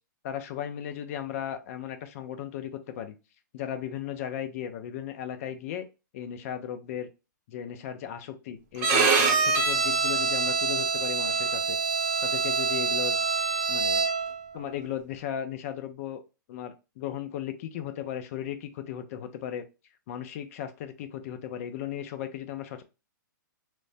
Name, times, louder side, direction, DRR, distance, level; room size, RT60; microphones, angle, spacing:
voice 1, 0.2-3.2 3.5-5.9 6.1-7.1 7.5-11.8 12.2-13.2 13.7-14.0 14.5-16.2 16.5-19.6 20.1-22.8, left 10 dB, 45° left, 9 dB, 0.5 m, -36 dB
Bowed string instrument, 8.8-14.4, right 4 dB, 35° right, 0.7 m, -25 dB
3.0 x 2.1 x 2.7 m, 0.29 s
hypercardioid pair, 140°, 11 cm